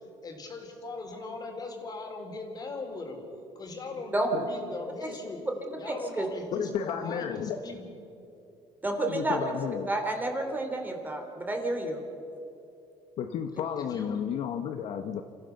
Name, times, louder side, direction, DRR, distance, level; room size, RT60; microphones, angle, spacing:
voice 1, 0.2-3.2 3.5-5.4 5.7-7.8 13.8-14.2, left 3 dB, 35° left, 3 dB, 4.1 m, -39 dB
voice 2, 4.1-4.4 5.9-6.3 8.8-9.4 9.9-12.0, right 2 dB, 15° right, 3 dB, 3.4 m, -30 dB
voice 3, 6.5-7.6 9.1-9.9 13.2-15.2, left 8 dB, 65° left, 7 dB, 1.1 m, -32 dB
28.0 x 15.0 x 7.0 m, 2.7 s
cardioid pair, 115°, 11 cm